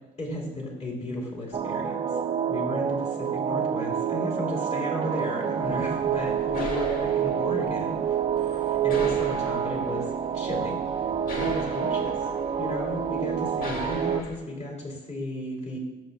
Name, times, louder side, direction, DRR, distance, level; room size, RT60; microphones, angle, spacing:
voice 1, 0.2-2.0 2.5-10.0 10.3-11.1 11.4-12.2 12.6-15.8, left 1 dB, 35° left, -2 dB, 2.8 m, -34 dB
sound 1, 1.5-14.2, right 8 dB, 30° right, 0.4 m, -28 dB
sound 2, 5.6-14.4, left 2 dB, 55° left, 1.4 m, -40 dB
12.0 x 6.4 x 2.3 m, 1.2 s
cardioid pair, 110°, 17 cm